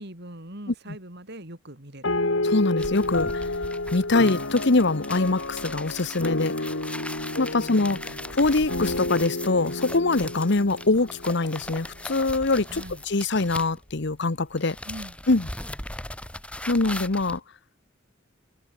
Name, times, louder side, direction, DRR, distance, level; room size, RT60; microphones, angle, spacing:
voice 1, 0.0-2.1 7.5-8.3 12.7-13.0 14.9-15.2, right 1 dB, 55° right, 5.1 m, -42 dB
sound 1, 2.0-11.8, left 2 dB, 80° left, 3.5 m, -30 dB
voice 2, 2.4-3.4 3.9-6.5 7.4-8.0 8.3-14.8 15.3-15.5 16.7-17.4, left 3 dB, 60° left, 1.1 m, -23 dB
sound 2, 2.8-14.2 14.5-17.4, left 1 dB, 5° left, 3.1 m, -39 dB
open air
head